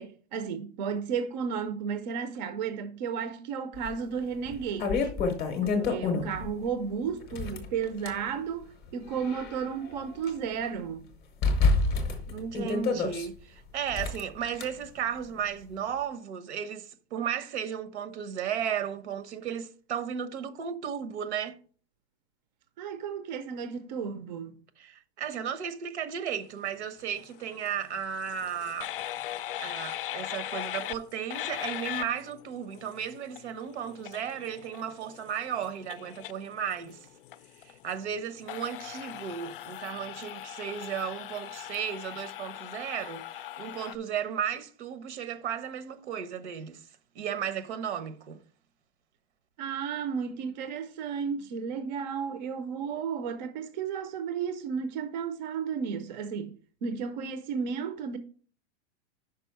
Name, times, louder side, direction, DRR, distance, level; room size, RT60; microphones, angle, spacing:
voice 1, 0.0-5.1 5.9-11.1 22.8-24.6 49.6-56.5 56.8-58.2, right 6 dB, 40° right, 0.6 m, -33 dB
sound 1, 3.9-4.0 4.5-6.5 7.2-8.2 8.9-10.3 10.6-10.7 11.4-13.3 13.9-14.7, left 4 dB, 15° left, 0.7 m, -28 dB
voice 2, 5.6-6.0 12.3-21.6 24.8-28.9 29.6-37.0 37.6-46.8 47.1-48.4, right 8 dB, 75° right, 1.1 m, -35 dB
sound 2, 27.0-44.0, left 13 dB, 55° left, 0.4 m, -40 dB
5.4 x 4.9 x 5.6 m
supercardioid pair, 180°, 33 cm